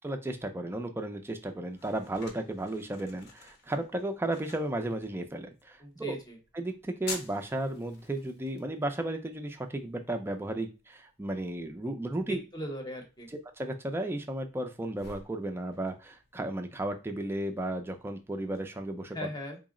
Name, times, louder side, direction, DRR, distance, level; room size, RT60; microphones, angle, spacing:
voice 1, 0.0-6.2 6.5-12.4 13.6-19.3, right 1 dB, 10° right, 5 dB, 0.4 m, -34 dB
sound 1, 1.1-18.6, left 4 dB, 55° left, 0.7 m, -51 dB
voice 2, 5.8-6.4 12.2-13.3 19.1-19.6, equal, 20° left, 3 dB, 0.7 m, -39 dB
3.6 x 2.0 x 3.6 m, 0.30 s
head